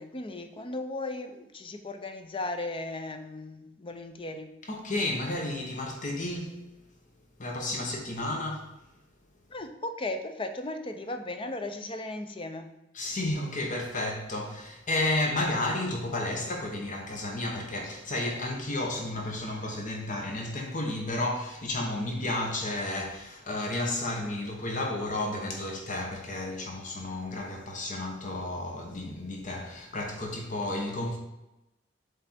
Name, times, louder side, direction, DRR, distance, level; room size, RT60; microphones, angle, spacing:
voice 1, 0.0-4.6 9.5-12.7, left 2 dB, 30° left, 0.6 m, -36 dB
voice 2, 4.7-6.6 7.4-8.7 12.9-31.2, left 2 dB, 45° left, 1.0 m, -32 dB
7.6 x 3.4 x 4.3 m
head